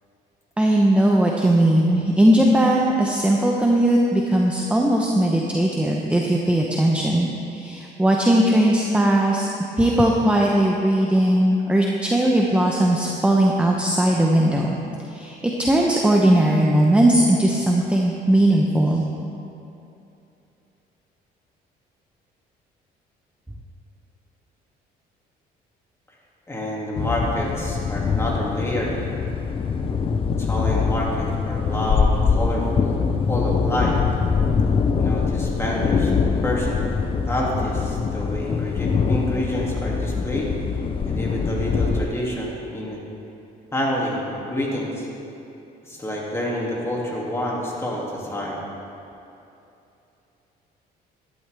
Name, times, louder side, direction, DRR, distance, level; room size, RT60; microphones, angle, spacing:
voice 1, 0.6-9.5 9.8-14.8 15.1-19.0, right 1 dB, 5° right, -1 dB, 0.8 m, -19 dB
voice 2, 26.5-29.0 30.4-34.0 35.0-36.1 36.4-36.9 37.3-40.5 41.0-43.0 43.7-45.1 45.8-48.6, equal, 15° left, -4 dB, 2.4 m, -28 dB
sound 1, 27.0-42.0, left 5 dB, 35° left, 0.6 m, -23 dB
12.0 x 11.5 x 3.4 m, 2.8 s
cardioid pair, 110°, 17 cm